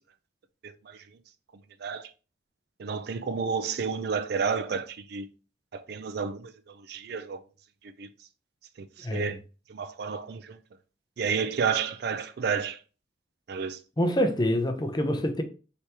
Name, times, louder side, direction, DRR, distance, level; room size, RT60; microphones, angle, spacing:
voice 1, 0.6-1.0 1.8-2.1 2.8-5.3 5.7-7.4 8.0-8.1 9.0-9.4 9.7-10.6 11.2-12.8 13.5-13.8, right 6 dB, 55° right, 0.4 m, -31 dB
voice 2, 9.0-9.4 14.0-15.4, equal, 20° left, 0.6 m, -26 dB
4.5 x 3.4 x 2.8 m
head